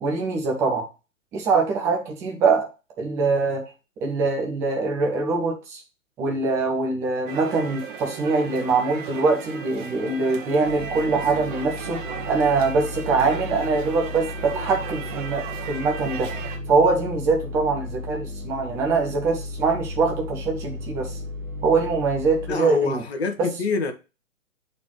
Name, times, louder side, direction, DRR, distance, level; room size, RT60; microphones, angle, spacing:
voice 1, 0.0-0.9 1.3-2.7 3.0-3.6 4.0-5.8 6.2-16.3 16.7-21.2 21.6-23.0 23.4-23.5, right 4 dB, 5° right, 0.5 m, -23 dB
Rome Ambulance, 7.3-16.6, right 6 dB, 40° right, 1.6 m, -36 dB
sound 1, 10.6-22.6, left 2 dB, 70° right, 1.1 m, -35 dB
voice 2, 22.5-23.9, left 4 dB, 50° left, 1.4 m, -25 dB
8.8 x 4.3 x 3.1 m
figure-of-eight pair, 125°, 40 cm